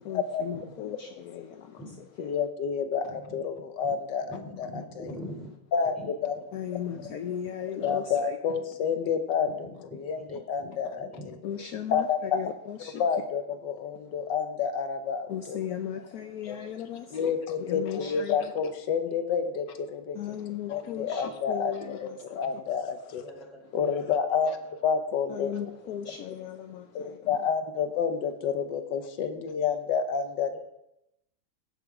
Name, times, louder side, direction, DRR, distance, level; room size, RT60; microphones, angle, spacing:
voice 1, 0.1-1.8 2.2-2.3 6.5-8.4 11.4-13.0 15.3-18.5 20.1-22.4 25.3-27.5, left 9 dB, 65° left, 1.1 m, -37 dB
voice 2, 2.2-4.3 4.6-4.7 5.7-6.3 6.7-6.8 7.8-9.7 10.0-11.1 11.9-12.4 13.0-15.6 16.5-16.6 17.1-20.2 20.7-23.2 23.7-25.5 26.9-30.6, left 6 dB, 85° left, 1.5 m, -29 dB
voice 3, 3.0-3.9 4.2-5.5 5.8-6.4 6.9-7.1 8.5-8.7 9.6-10.0 10.3-10.7 11.0-11.6 16.2-16.3 17.3-17.4 19.1-19.2 23.1-23.6 25.6-26.5 30.5-30.6, left 1 dB, ahead, 2.7 m, -45 dB
16.5 x 5.6 x 4.8 m
omnidirectional pair, 1.9 m